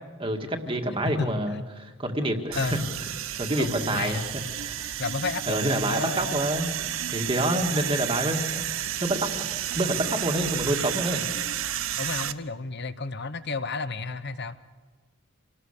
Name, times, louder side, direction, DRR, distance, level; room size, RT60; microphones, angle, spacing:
voice 1, 0.2-2.8 3.4-4.3 4.6-4.8 5.5-6.7 7.1-11.3, right 1 dB, 25° right, 3 dB, 1.9 m, -28 dB
voice 2, 1.0-1.6 2.5-2.9 3.6-4.2 5.0-6.4 12.0-14.6, left 3 dB, 50° left, 13 dB, 1.0 m, -32 dB
sound 1, 2.5-12.3, right 11 dB, 65° right, 0.8 m, -31 dB
27.0 x 19.0 x 6.7 m, 1.3 s
head